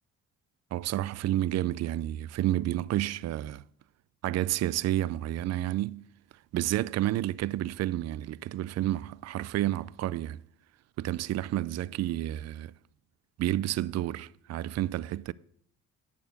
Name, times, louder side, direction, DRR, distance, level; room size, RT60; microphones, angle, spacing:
voice 1, 0.7-3.6 4.2-6.0 6.5-10.4 11.0-12.7 13.4-15.3, right 13 dB, 60° right, 0.4 m, -30 dB
8.9 x 6.9 x 8.1 m
cardioid pair, 90°, 30 cm